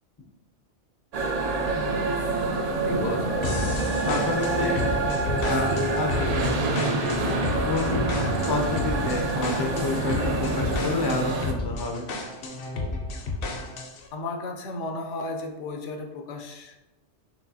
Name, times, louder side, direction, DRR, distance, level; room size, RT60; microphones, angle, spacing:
sound 1, 1.1-11.5, right 3 dB, 85° right, 0.3 m, -27 dB
sound 2, 1.5-11.8, right 2 dB, 55° right, 0.7 m, -37 dB
voice 1, 1.6-2.1 2.8-3.4 14.1-16.7, left 3 dB, 85° left, 4 dB, 1.0 m, -34 dB
sound 3, 3.4-14.1, left 3 dB, 60° left, 0.7 m, -31 dB
voice 2, 4.0-4.8 5.4-7.2 7.6-12.0 12.8-12.9, left 2 dB, 35° left, 1 dB, 0.4 m, -30 dB
4.9 x 3.2 x 2.7 m, 0.98 s
omnidirectional pair, 1.2 m